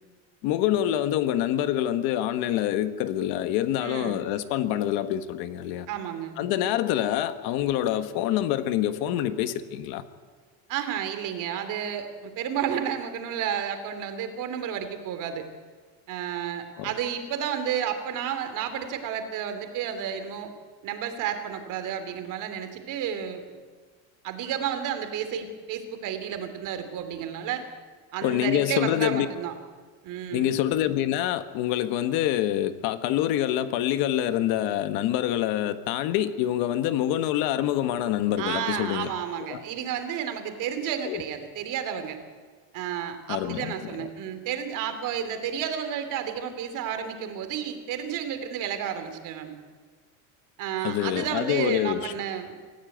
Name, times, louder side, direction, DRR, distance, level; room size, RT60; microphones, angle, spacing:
voice 1, 0.4-5.9 6.4-10.0 16.8-16.9 28.2-29.3 30.3-39.1 39.5-39.6 41.0-41.2 43.3-44.1 50.8-52.1, left 12 dB, 60° left, 11 dB, 1.5 m, -26 dB
voice 2, 3.8-4.2 5.9-6.4 10.7-15.4 16.1-20.5 20.8-23.4 24.2-27.6 28.1-29.5 30.0-30.5 38.4-42.2 42.7-49.5 50.6-52.6, right 9 dB, 50° right, 8 dB, 3.1 m, -31 dB
25.5 x 15.0 x 9.3 m, 1.5 s
cardioid pair, 155°, 40 cm